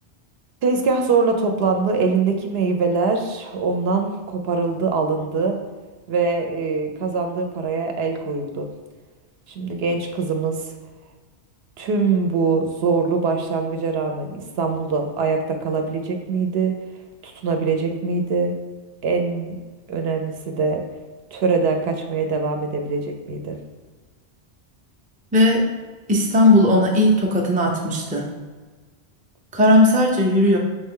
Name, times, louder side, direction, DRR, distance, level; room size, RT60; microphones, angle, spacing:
voice 1, 0.6-5.6 6.1-8.7 9.5-10.7 11.8-16.7 17.2-18.5 19.0-19.6 19.9-20.8 21.3-23.6, right 4 dB, 70° right, 4 dB, 0.8 m, -23 dB
voice 2, 25.3-25.7 26.1-28.3 29.5-30.6, left 1 dB, 10° right, 0 dB, 0.4 m, -17 dB
4.2 x 3.4 x 3.7 m, 1.3 s
omnidirectional pair, 1.1 m